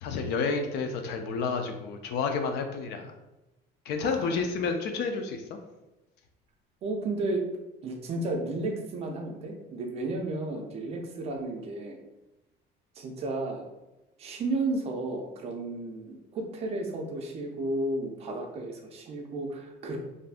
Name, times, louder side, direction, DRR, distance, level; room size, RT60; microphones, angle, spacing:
voice 1, 0.0-3.1 3.9-5.6, left 4 dB, 65° left, 5 dB, 0.4 m, -30 dB
voice 2, 4.0-4.5 6.8-7.4 7.8-12.0 13.0-13.7 14.2-20.0, right 2 dB, 35° right, 2 dB, 0.4 m, -33 dB
3.4 x 2.6 x 2.4 m, 0.98 s
cardioid pair, 175°, 18 cm